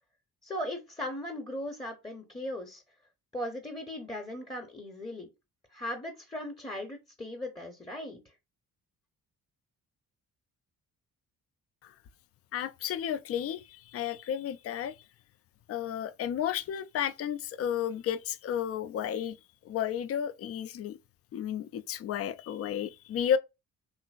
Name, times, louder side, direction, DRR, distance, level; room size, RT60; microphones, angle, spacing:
voice 1, 0.4-2.8 3.3-5.3 5.7-8.2, left 1 dB, 10° left, 0.7 m, -38 dB
voice 2, 12.5-15.0 15.7-19.4 19.6-21.0 21.3-23.4, left 9 dB, 35° left, 0.4 m, -32 dB
2.9 x 2.5 x 2.3 m
figure-of-eight pair, 40°, 45 cm